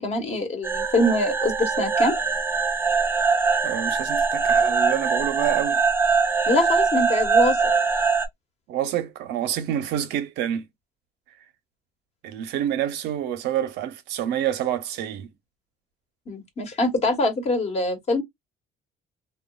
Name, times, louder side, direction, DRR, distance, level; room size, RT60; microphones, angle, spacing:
voice 1, 0.0-2.1 6.5-7.6 16.3-18.2, left 1 dB, 40° left, 1.1 m, -24 dB
sound 1, 0.6-8.3, right 5 dB, 15° right, 0.4 m, -22 dB
voice 2, 3.6-5.8 8.7-10.7 12.2-15.3, right 11 dB, 80° right, 0.7 m, -27 dB
2.9 x 2.2 x 2.2 m
cardioid pair, 110°, 17 cm